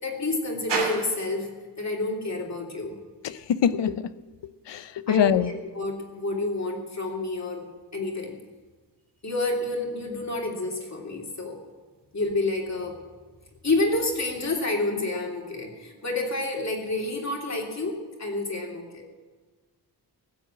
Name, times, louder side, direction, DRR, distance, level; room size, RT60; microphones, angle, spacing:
voice 1, 0.0-1.5 1.8-3.0 5.1-5.4 5.7-7.7 7.9-8.4 9.2-11.6 12.1-13.0 13.6-19.0, left 2 dB, 40° left, 0 dB, 2.7 m, -29 dB
sound 1, 0.7-18.1, right 4 dB, 80° right, 2.9 m, -43 dB
voice 2, 3.2-4.1 4.7-5.5, left 9 dB, 90° left, 14 dB, 0.7 m, -24 dB
15.5 x 8.1 x 7.6 m, 1.4 s
wide cardioid pair, 140°, 41 cm